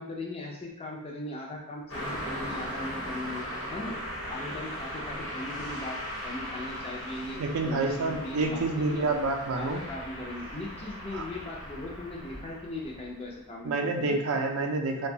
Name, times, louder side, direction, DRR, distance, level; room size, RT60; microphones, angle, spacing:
voice 1, 0.0-3.4 3.7-4.0 4.3-6.0 6.2-9.0 9.6-14.6, left 2 dB, 25° left, -2 dB, 0.4 m, -39 dB
Car passing by, 1.9-13.3, equal, 65° left, 1.0 m, -38 dB
voice 2, 7.4-9.8 11.1-11.3 13.6-15.1, right 3 dB, 75° right, 4 dB, 0.4 m, -28 dB
2.6 x 2.2 x 2.6 m, 0.81 s
head